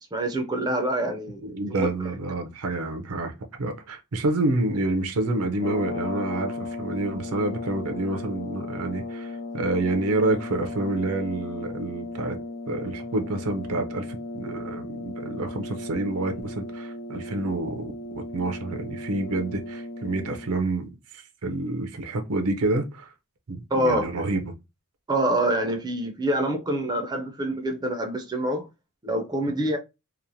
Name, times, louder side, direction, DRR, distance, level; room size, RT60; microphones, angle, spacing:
voice 1, 0.1-1.5 1.8-1.9 23.7-24.1 25.1-28.6 29.0-29.8, right 1 dB, 20° right, 0.4 m, -26 dB
voice 2, 1.4-12.4 12.7-23.1 23.5-24.5, right 2 dB, 80° right, 0.6 m, -28 dB
sound 1, 5.5-20.7, left 2 dB, 80° left, 0.6 m, -36 dB
3.0 x 2.0 x 2.6 m
head